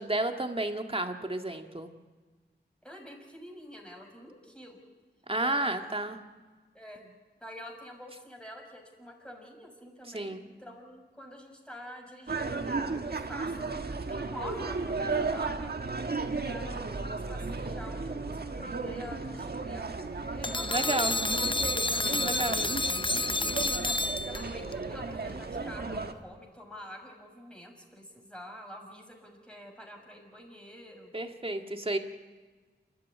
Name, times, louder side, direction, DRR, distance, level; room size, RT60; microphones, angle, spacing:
voice 1, 0.0-1.9 5.3-6.2 10.1-10.4 20.7-21.1 22.2-22.6 31.1-32.0, right 2 dB, 30° right, 5 dB, 1.9 m, -31 dB
voice 2, 2.8-4.8 5.4-5.9 6.7-7.0 7.4-10.3 10.6-13.6 14.1-15.7 16.3-19.9 20.3-21.5 22.1-22.8 24.0-31.1, equal, 5° left, 1 dB, 6.4 m, -47 dB
sound 1, 12.3-26.1, right 3 dB, 60° right, 1.5 m, -34 dB
sound 2, 20.4-24.7, left 2 dB, 30° left, 0.6 m, -30 dB
28.0 x 13.5 x 9.5 m, 1.4 s
wide cardioid pair, 55°, 18 cm